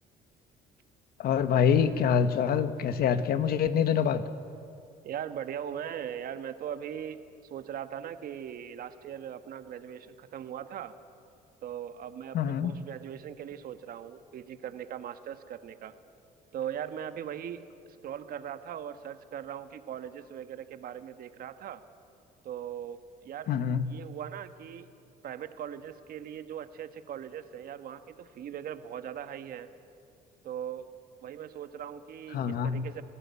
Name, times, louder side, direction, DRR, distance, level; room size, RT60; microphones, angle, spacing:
voice 1, 1.2-4.2 12.3-12.8 23.5-23.8 32.3-32.9, left 7 dB, 65° left, 11 dB, 1.4 m, -25 dB
voice 2, 5.0-10.9 11.6-15.9 16.5-21.8 22.4-23.5 23.9-24.9 25.2-29.7 30.4-30.9 31.2-33.0, right 9 dB, 60° right, 10 dB, 1.5 m, -40 dB
29.5 x 18.5 x 8.4 m, 2.5 s
cardioid pair, 110°, 17 cm